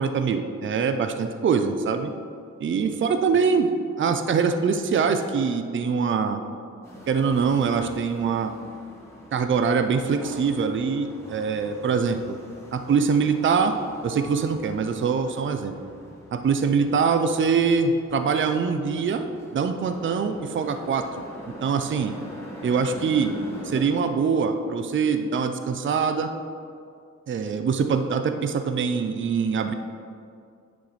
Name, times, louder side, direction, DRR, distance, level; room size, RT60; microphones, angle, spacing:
voice 1, 0.0-2.1 2.6-3.7 4.0-6.4 7.1-8.5 9.3-12.4 12.7-13.7 14.0-15.7 16.3-19.3 19.5-21.2 21.6-22.1 22.6-23.3 23.6-26.3 27.3-29.7, right 5 dB, 45° right, 8 dB, 0.5 m, -23 dB
sound 1, 6.8-23.9, left 1 dB, 10° left, 1.6 m, -43 dB
10.5 x 6.2 x 3.2 m, 2.3 s
wide cardioid pair, 125°, 29 cm